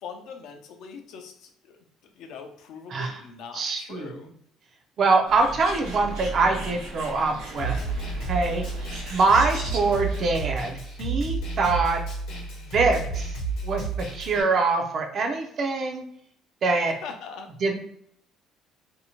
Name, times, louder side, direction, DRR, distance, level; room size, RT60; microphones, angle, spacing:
voice 1, 0.0-4.3 16.9-17.5, left 6 dB, 55° left, 4 dB, 0.4 m, -42 dB
voice 2, 3.5-4.1 5.0-7.8 8.3-8.6 9.1-12.0 12.7-13.3 13.6-16.0 16.6-16.9 17.6-17.8, right 3 dB, 35° right, 3 dB, 0.4 m, -24 dB
Bird, 5.3-10.4, right 1 dB, 80° right, 0.7 m, -37 dB
Snare drum, 7.6-14.4, right 3 dB, 90° left, 0.8 m, -31 dB
2.6 x 2.0 x 2.9 m, 0.68 s
cardioid pair, 170°, 0 cm